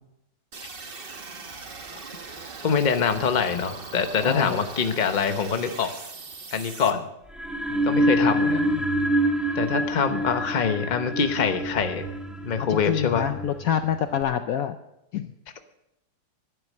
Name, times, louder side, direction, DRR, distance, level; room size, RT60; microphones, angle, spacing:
sound 1, 0.5-6.9, right 4 dB, 35° right, 1.2 m, -40 dB
voice 1, 2.6-5.9 6.5-7.1 7.8-8.7 9.5-12.1 12.4-13.3, left 6 dB, 35° left, 8 dB, 0.9 m, -24 dB
voice 2, 4.2-4.6 7.7-8.8 12.7-14.8 15.1-15.3, left 9 dB, 65° left, 9 dB, 0.9 m, -28 dB
sound 2, 7.3-14.2, right 1 dB, ahead, 1.2 m, -26 dB
12.0 x 10.5 x 6.5 m, 0.86 s
omnidirectional pair, 1.8 m